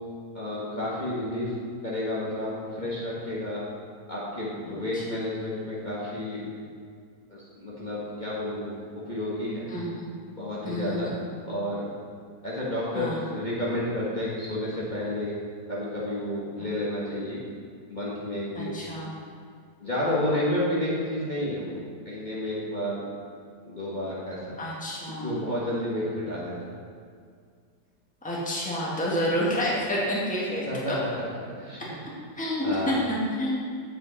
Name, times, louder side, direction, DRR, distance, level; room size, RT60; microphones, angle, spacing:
voice 1, 0.3-1.5 1.8-3.6 4.1-6.4 7.3-8.7 9.1-9.7 10.4-11.1 11.4-11.9 12.4-15.3 15.7-17.4 17.9-18.8 19.8-21.8 22.0-23.0 23.6-24.5 25.2-26.7 30.7-30.9 31.6-32.0 32.6-33.0, left 1 dB, 30° left, -8 dB, 1.4 m, -31 dB
voice 2, 4.7-5.0 9.7-10.1 10.6-11.1 12.9-13.2 18.5-19.1 24.6-25.4 28.2-30.9 32.3-33.5, equal, 5° left, -5 dB, 1.5 m, -29 dB
8.5 x 7.8 x 4.1 m, 2.2 s
omnidirectional pair, 1.8 m